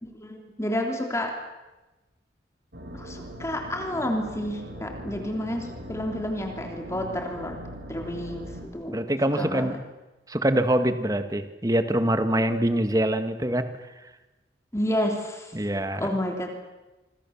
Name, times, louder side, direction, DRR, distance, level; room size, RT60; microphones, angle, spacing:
voice 1, 0.0-1.3 2.9-7.6 7.9-9.0 9.3-9.7 14.7-15.5 15.9-16.5, left 1 dB, 15° left, 3 dB, 3.2 m, -30 dB
sound 1, 2.7-8.7, equal, 70° right, 4.6 m, -40 dB
voice 2, 8.9-9.8 10.3-13.7 15.5-16.0, right 1 dB, 20° right, 9 dB, 1.7 m, -24 dB
26.0 x 25.5 x 7.2 m, 1.1 s
head